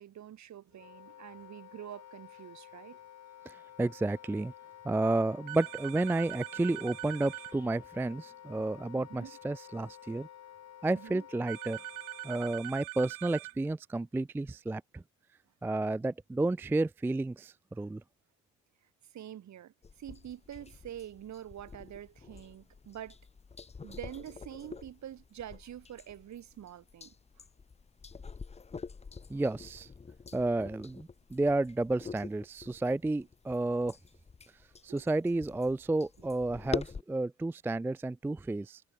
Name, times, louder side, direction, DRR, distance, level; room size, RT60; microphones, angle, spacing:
voice 1, 0.0-3.0 9.1-9.3 10.9-11.3 19.1-23.2 23.8-27.1 34.9-35.1 36.2-36.3, right 11 dB, 60° right, 7.0 m, -46 dB
Wind instrument woodwind instrument, 0.7-12.7, left 10 dB, 55° left, 5.1 m, -52 dB
voice 2, 3.5-4.5 4.8-10.3 10.8-11.8 12.2-15.0 15.6-18.0 29.3-29.9 30.3-34.0 34.8-38.8, right 2 dB, 5° right, 0.4 m, -31 dB
sound 1, 5.5-7.5 11.5-13.5, right 23 dB, 80° right, 1.3 m, -42 dB
sound 2, 19.8-37.0, left 5 dB, 20° left, 0.8 m, -46 dB
supercardioid pair, 80°, 32 cm